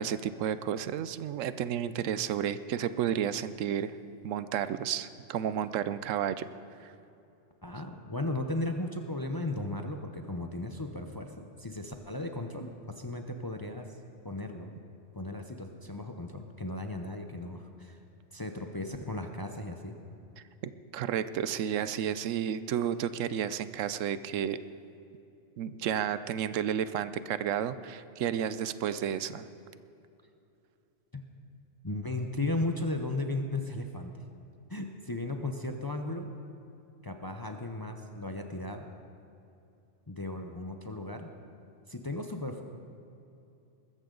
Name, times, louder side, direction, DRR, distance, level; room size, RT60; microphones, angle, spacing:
voice 1, 0.0-4.0 4.2-6.5 6.8-6.9 20.6-24.6 25.6-29.5, right 9 dB, 85° right, 13 dB, 1.0 m, -32 dB
voice 2, 7.6-13.9 14.2-14.7 15.1-18.0 18.3-20.0 31.1-31.2 31.8-34.2 34.7-36.3 37.0-38.9 40.1-41.3 41.9-42.6, left 2 dB, 25° left, 4 dB, 0.6 m, -36 dB
21.0 x 14.0 x 3.9 m, 2.7 s
omnidirectional pair, 1.3 m